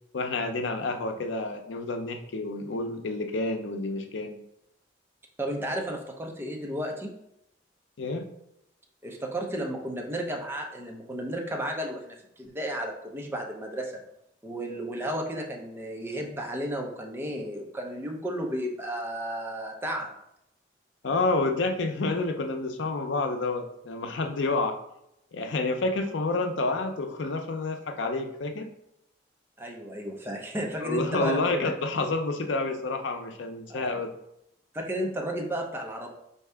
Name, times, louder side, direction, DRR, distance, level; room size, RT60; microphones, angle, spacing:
voice 1, 0.1-4.4 8.0-8.3 21.0-24.8 25.3-28.7 30.8-34.1, left 3 dB, 85° left, 7 dB, 0.5 m, -29 dB
voice 2, 5.4-7.1 9.0-13.9 14.4-20.1 29.6-31.7 33.7-34.0 34.7-36.1, right 1 dB, 15° right, 1 dB, 0.6 m, -33 dB
4.5 x 2.8 x 3.4 m, 0.80 s
head